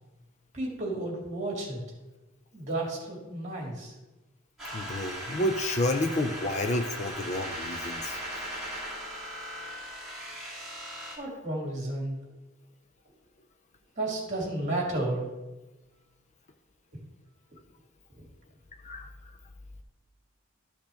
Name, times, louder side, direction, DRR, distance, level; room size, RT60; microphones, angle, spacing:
voice 1, 0.5-1.8 2.5-3.9 11.2-12.2 14.0-15.3 18.1-18.2, right 2 dB, 35° right, -1 dB, 2.5 m, -32 dB
sound 1, 4.6-11.1, equal, ahead, 2.6 m, -38 dB
voice 2, 4.7-8.2 18.8-19.1, left 1 dB, 35° left, 7 dB, 0.5 m, -30 dB
13.0 x 5.2 x 3.4 m, 1.1 s
head